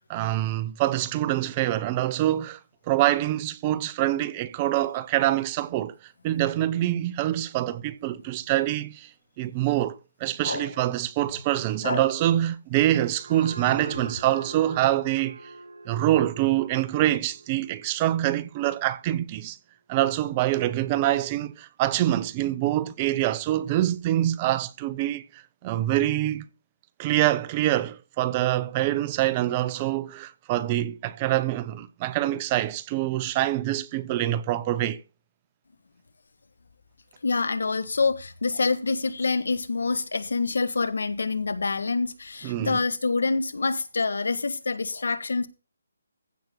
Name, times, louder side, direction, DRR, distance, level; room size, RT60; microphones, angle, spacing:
voice 1, 0.1-2.6 2.9-6.0 6.2-9.1 9.4-15.4 15.9-19.6 19.9-26.5 27.0-35.0 42.4-42.8, right 14 dB, 20° right, 0.6 m, -25 dB
voice 2, 11.8-12.1 37.2-45.5, left 4 dB, 75° left, 1.5 m, -26 dB
sound 1, 13.0-18.2, right 2 dB, 85° right, 2.4 m, -42 dB
15.5 x 5.9 x 3.8 m
hypercardioid pair, 165°, 0 cm